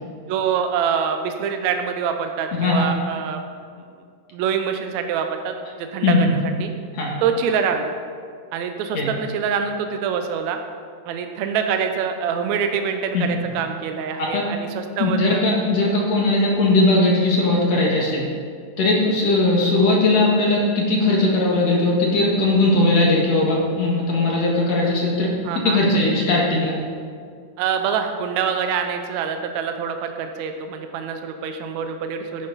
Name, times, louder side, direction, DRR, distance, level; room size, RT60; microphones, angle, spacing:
voice 1, 0.3-3.4 4.3-6.7 7.2-7.9 8.5-10.6 11.1-15.4 25.4-25.8 27.6-32.5, right 7 dB, 80° right, 6 dB, 1.6 m, -25 dB
voice 2, 6.0-6.3 6.9-7.1 8.9-9.1 13.1-13.2 14.3-14.4 15.0-18.3 18.8-25.3 25.7-26.8, left 2 dB, 55° left, -3 dB, 2.7 m, -19 dB
14.5 x 9.6 x 4.1 m, 2.1 s
omnidirectional pair, 4.0 m